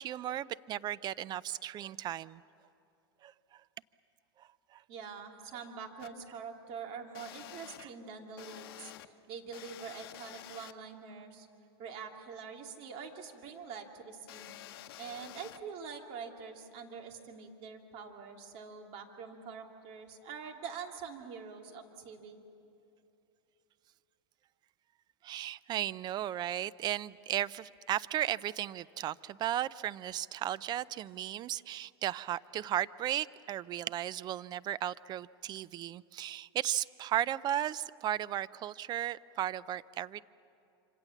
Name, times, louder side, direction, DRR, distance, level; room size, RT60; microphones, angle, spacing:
voice 1, 0.0-2.4 3.2-3.6 4.4-4.8 7.8-7.9 25.2-40.2, right 12 dB, 35° right, 18 dB, 0.5 m, -35 dB
voice 2, 4.9-11.5 11.8-14.6 15.0-22.4, right 6 dB, 50° right, 3 dB, 2.7 m, -45 dB
sound 1, 6.0-6.1 7.1-7.9 8.4-9.1 9.5-10.7 14.3-15.6, left 13 dB, 65° left, 0.9 m, -49 dB
26.0 x 26.0 x 7.2 m, 2.7 s
hypercardioid pair, 105°, 13 cm